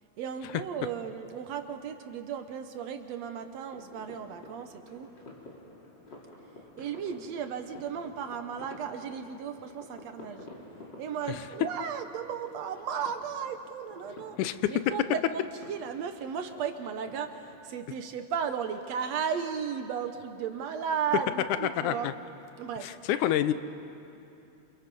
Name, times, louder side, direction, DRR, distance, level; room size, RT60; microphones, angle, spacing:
voice 1, 0.2-5.1 6.8-10.5 11.0-14.4 14.7-22.1 22.6-23.0, right 7 dB, 65° right, 7 dB, 1.9 m, -35 dB
sound 1, 3.7-17.6, left 2 dB, 35° left, 3.7 m, -51 dB
voice 2, 14.4-14.8 21.8-22.1 22.8-23.5, left 12 dB, 80° left, 12 dB, 2.1 m, -28 dB
28.0 x 28.0 x 5.4 m, 2.8 s
omnidirectional pair, 3.6 m